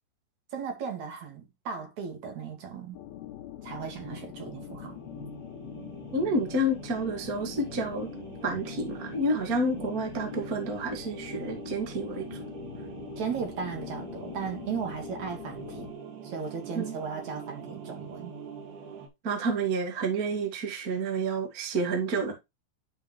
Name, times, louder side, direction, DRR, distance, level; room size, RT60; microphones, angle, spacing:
voice 1, 0.5-3.0 3.6-5.0 9.7-9.9 13.2-15.9 16.2-18.4, right 6 dB, 55° right, 3.4 m, -36 dB
sound 1, 2.9-15.9, left 13 dB, 85° left, 2.9 m, -43 dB
sound 2, 4.0-19.1, right 5 dB, 90° right, 3.8 m, -44 dB
voice 2, 6.1-8.1 8.4-12.4 16.7-17.0 19.2-22.3, right 2 dB, 35° right, 1.5 m, -29 dB
11.0 x 5.6 x 3.1 m
omnidirectional pair, 4.2 m